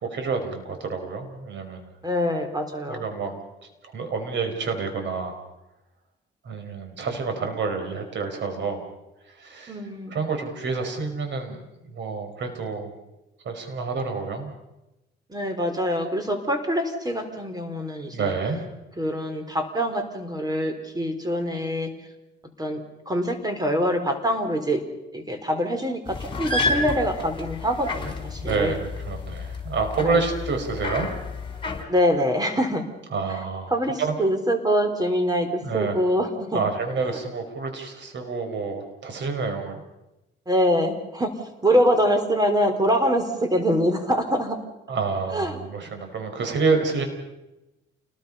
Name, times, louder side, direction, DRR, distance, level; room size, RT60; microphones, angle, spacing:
voice 1, 0.0-1.9 2.9-3.4 3.9-5.4 6.4-8.9 9.4-9.8 10.1-12.9 13.4-14.5 18.1-18.6 28.4-31.1 33.1-33.7 34.0-34.1 35.6-36.0 36.5-39.8 44.9-47.0, right 4 dB, 65° right, 5 dB, 5.1 m, -28 dB
voice 2, 2.0-3.0 9.7-10.2 15.3-18.3 19.0-21.9 22.6-22.8 23.1-24.8 25.1-28.8 30.0-30.2 31.9-32.8 33.7-35.5 35.7-36.6 40.5-41.3 41.6-44.6 45.3-45.6, equal, 20° right, 6 dB, 3.9 m, -24 dB
sound 1, 26.1-31.8, left 2 dB, 25° left, 5.0 m, -30 dB
29.0 x 20.5 x 5.6 m, 0.97 s
cardioid pair, 90°, 20 cm